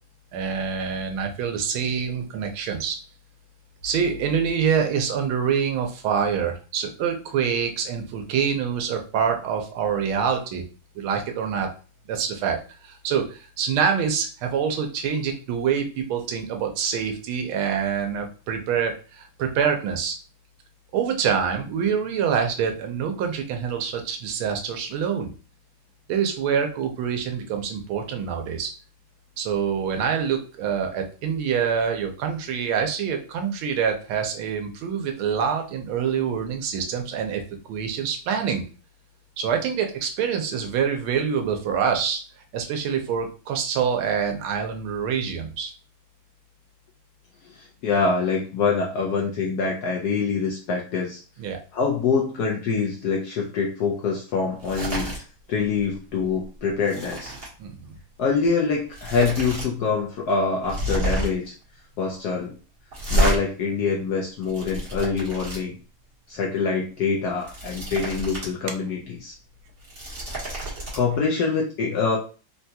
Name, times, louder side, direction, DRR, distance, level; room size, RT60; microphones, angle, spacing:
voice 1, 0.3-3.0 3.8-10.6 10.9-11.7 12.1-12.6 12.8-20.1 20.9-25.3 26.1-28.7 29.4-37.4 37.7-38.6 39.4-42.2 42.5-45.7 51.4-51.6 57.6-57.8, right 7 dB, 90° right, 4 dB, 1.5 m, -26 dB
voice 2, 47.4-51.2 51.7-55.1 55.5-57.3 58.2-61.5 62.0-62.6 63.1-65.8 66.3-69.3 70.7-72.2, left 5 dB, 75° left, -1 dB, 0.9 m, -25 dB
sound 1, 54.6-55.2 55.6-55.8 56.2-57.5 58.5-58.6 58.9-59.7 60.0-60.1 60.6-61.5 62.9-63.4 64.2-65.6 67.2-68.5 68.9-69.0 69.7-71.0, right 1 dB, 35° right, 1.1 m, -28 dB
3.8 x 2.3 x 2.7 m, 0.36 s
omnidirectional pair, 2.2 m